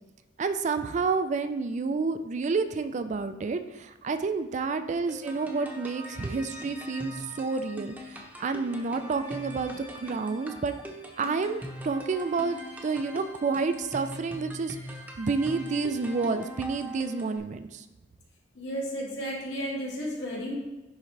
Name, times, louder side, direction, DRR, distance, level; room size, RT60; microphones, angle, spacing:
voice 1, 0.4-9.8 10.0-10.7 11.2-17.8, right 4 dB, 40° right, 9 dB, 0.4 m, -29 dB
sound 1, 5.1-17.4, equal, 10° right, 0.8 m, -42 dB
voice 2, 18.6-20.6, equal, 65° left, -5 dB, 2.4 m, -33 dB
10.0 x 3.7 x 3.3 m, 1.1 s
head